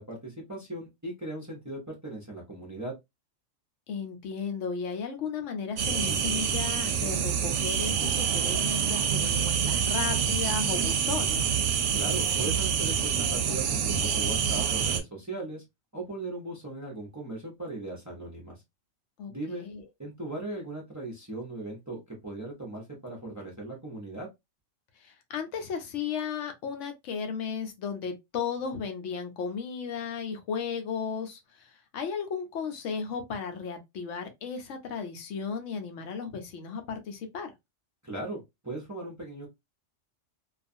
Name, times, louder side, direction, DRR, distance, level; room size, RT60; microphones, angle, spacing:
voice 1, 0.0-2.9 11.9-15.6 15.9-18.6 19.3-19.7 20.0-24.3 38.0-39.5, right 2 dB, 20° right, 0.5 m, -38 dB
voice 2, 3.9-11.5 19.2-19.8 25.0-37.5, left 6 dB, 75° left, 0.9 m, -35 dB
sound 1, 5.8-15.0, right 7 dB, 75° right, 0.9 m, -27 dB
2.4 x 2.3 x 2.5 m
omnidirectional pair, 1.3 m